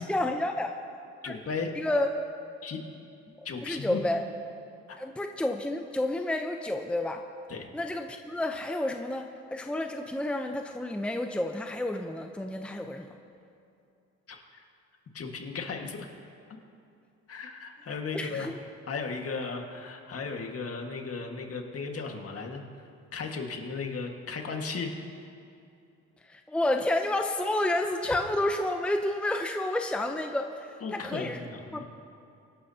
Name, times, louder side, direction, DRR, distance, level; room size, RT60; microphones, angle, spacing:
voice 1, 0.1-0.8 1.2-1.3 1.7-2.1 3.6-4.2 5.0-7.2 7.7-13.1 18.1-18.6 26.3-31.4 31.7-31.8, left 1 dB, 5° left, 4 dB, 0.7 m, -30 dB
voice 2, 1.2-1.7 2.6-2.8 3.4-4.0 4.9-5.0 7.5-7.7 14.3-14.6 15.1-16.1 17.3-18.5 18.9-22.6 23.1-24.9 28.0-28.1 30.8-31.8, left 4 dB, 50° left, 3 dB, 1.8 m, -36 dB
24.0 x 12.0 x 2.9 m, 2.6 s
cardioid pair, 90°, 30 cm